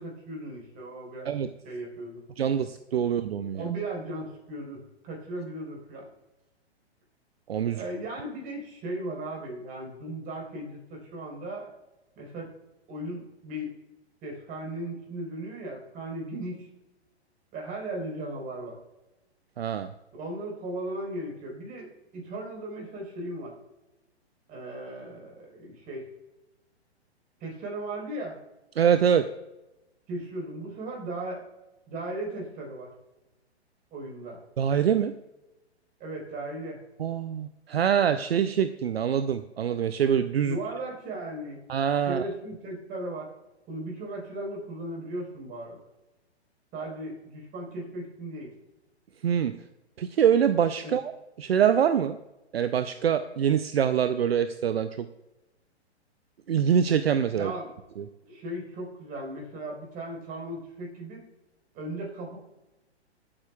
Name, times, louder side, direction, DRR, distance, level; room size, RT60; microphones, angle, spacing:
voice 1, 0.0-1.3 1.6-2.2 3.5-6.1 7.7-11.7 12.2-12.5 12.9-13.7 14.2-16.7 17.5-18.8 20.1-23.5 24.5-26.1 27.4-28.4 30.1-31.4 31.9-32.9 33.9-34.4 36.0-36.8 40.4-41.6 42.0-43.3 43.7-45.8 46.7-48.5 50.8-50.9 57.3-57.7 58.2-61.2 61.7-62.4, right 1 dB, 25° right, -1 dB, 4.3 m, -37 dB
voice 2, 2.4-3.7 7.5-7.8 19.6-19.9 28.8-29.3 34.6-35.1 37.0-40.6 41.7-42.2 49.2-49.6 50.0-51.1 51.4-52.2 52.5-55.1 56.5-57.5 58.0-58.1, right 8 dB, 65° right, 11 dB, 0.6 m, -24 dB
25.0 x 8.8 x 2.3 m, 1.0 s
figure-of-eight pair, 115°, 33 cm